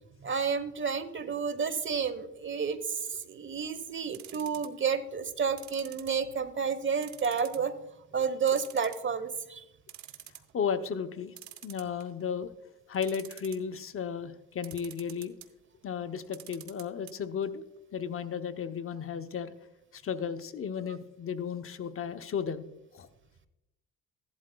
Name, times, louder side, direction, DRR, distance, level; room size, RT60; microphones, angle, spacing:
voice 1, 0.2-7.7 8.1-9.6, right 6 dB, 40° right, 13 dB, 1.0 m, -31 dB
sound 1, 4.1-4.9 5.6-6.5 7.0-7.7 8.0-8.1 8.5-9.3 9.6-9.7 9.9-10.5 11.4-12.2 12.9-13.8 14.6-15.5 16.2-17.1 17.4-17.5 17.8-17.9, right 11 dB, 70° right, 0.9 m, -47 dB
voice 2, 10.5-11.3 11.6-12.5 12.9-15.3 15.8-17.6 17.9-19.6 19.9-22.6 22.9-23.1, left 7 dB, 45° left, 9 dB, 0.7 m, -34 dB
15.5 x 11.5 x 2.2 m, 0.92 s
cardioid pair, 90°, 30 cm